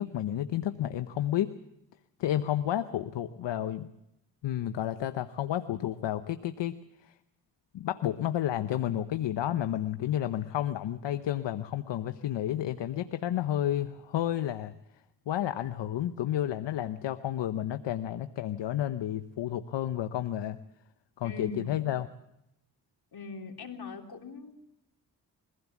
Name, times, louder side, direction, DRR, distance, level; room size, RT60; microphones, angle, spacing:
voice 1, 0.0-1.5 2.2-3.9 4.4-6.8 7.0-7.1 7.7-14.7 15.3-20.6 21.2-22.1, left 12 dB, 85° left, 10 dB, 0.9 m, -31 dB
voice 2, 21.2-21.7 23.1-24.6, left 4 dB, 65° left, 2 dB, 3.6 m, -41 dB
22.5 x 16.0 x 7.2 m, 0.83 s
cardioid pair, 55°, 42 cm